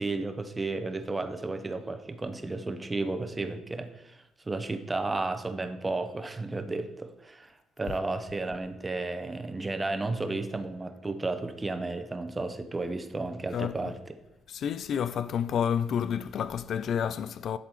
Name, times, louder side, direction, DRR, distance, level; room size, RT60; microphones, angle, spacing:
voice 1, 0.0-13.9, right 3 dB, 20° right, 0.8 m, -33 dB
voice 2, 13.5-14.0 14.5-17.6, left 8 dB, 60° left, 0.3 m, -30 dB
10.5 x 4.0 x 4.6 m
supercardioid pair, 80°, 0 cm